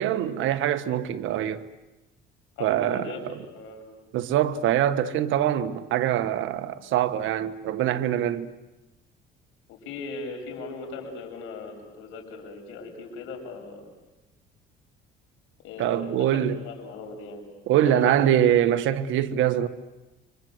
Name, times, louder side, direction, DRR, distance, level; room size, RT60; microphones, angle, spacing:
voice 1, 0.0-1.6 2.6-3.4 4.1-8.5 15.8-16.6 17.7-19.7, right 11 dB, 70° right, 1.5 m, -24 dB
voice 2, 2.6-3.8 9.7-13.8 15.6-17.4 17.8-18.3, left 4 dB, 75° left, 7.4 m, -38 dB
28.5 x 25.0 x 8.0 m
cardioid pair, 110°, 21 cm